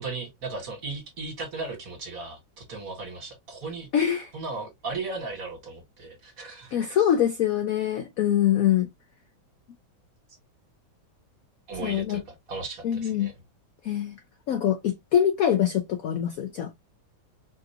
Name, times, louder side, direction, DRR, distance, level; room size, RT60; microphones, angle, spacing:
voice 1, 0.0-3.9 4.3-6.8 11.7-13.3, right 3 dB, 45° right, 1.8 m, -36 dB
voice 2, 3.9-4.3 6.7-8.9 11.8-12.2 12.8-13.3 13.8-14.2 14.5-16.7, left 10 dB, 85° left, 0.7 m, -24 dB
5.1 x 2.6 x 2.7 m
omnidirectional pair, 2.1 m